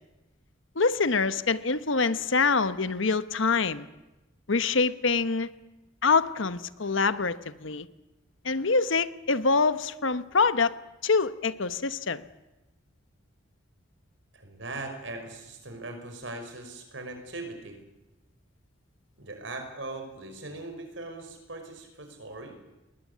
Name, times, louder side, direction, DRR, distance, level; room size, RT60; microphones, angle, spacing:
voice 1, 0.7-3.9 4.5-5.5 6.0-7.9 8.4-10.8 11.0-12.2, left 4 dB, 75° left, 13 dB, 1.1 m, -25 dB
voice 2, 14.3-17.8 19.2-22.6, right 2 dB, 65° right, 6 dB, 5.6 m, -40 dB
20.5 x 20.5 x 9.6 m, 1.0 s
head